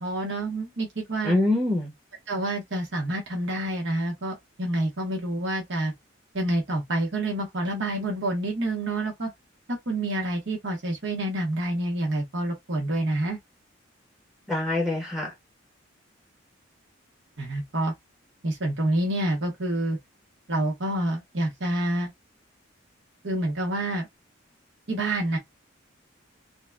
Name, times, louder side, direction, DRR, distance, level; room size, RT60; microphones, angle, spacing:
voice 1, 0.0-1.3 2.3-5.9 6.3-9.3 9.7-13.4 17.4-17.9 18.4-20.0 20.5-22.1 23.2-24.1 24.9-25.4, right 1 dB, 60° right, 1.2 m, -28 dB
voice 2, 1.2-1.9 14.5-15.3, left 2 dB, ahead, 0.9 m, -24 dB
4.0 x 2.2 x 2.4 m
head